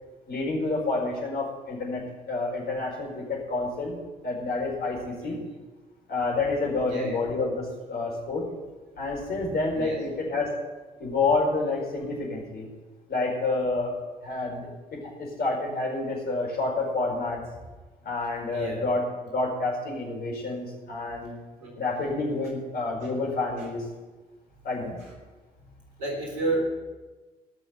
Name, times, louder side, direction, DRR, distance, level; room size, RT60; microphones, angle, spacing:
voice 1, 0.3-4.0 4.2-5.4 6.1-8.5 9.0-10.5 11.0-12.7 13.1-14.0 14.2-17.4 18.0-19.0 19.3-21.3 21.8-23.8 24.6-25.0, left 3 dB, 50° left, -1 dB, 4.9 m, -29 dB
voice 2, 6.9-7.2 9.7-10.0 18.5-18.9 21.6-21.8 26.0-26.7, right 2 dB, 80° right, -1 dB, 3.7 m, -30 dB
17.5 x 6.6 x 8.2 m, 1.2 s
figure-of-eight pair, 45°, 20 cm